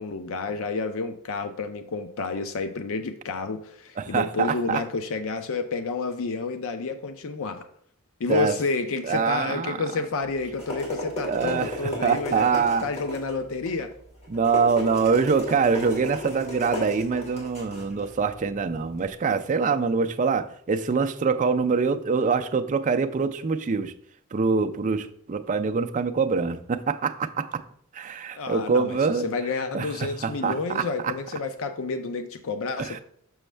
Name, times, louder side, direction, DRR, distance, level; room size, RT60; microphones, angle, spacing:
voice 1, 0.0-7.7 8.2-13.9 28.3-33.0, left 4 dB, 65° left, 9 dB, 0.5 m, -30 dB
voice 2, 4.0-4.8 8.3-8.6 9.0-9.8 11.3-12.8 14.3-23.9 24.3-27.6 27.9-29.3 29.7-31.1 32.8-33.0, right 5 dB, 35° right, 7 dB, 0.4 m, -24 dB
sound 1, 10.2-19.1, left 1 dB, 30° left, 2.3 m, -35 dB
6.2 x 6.2 x 3.3 m, 0.65 s
head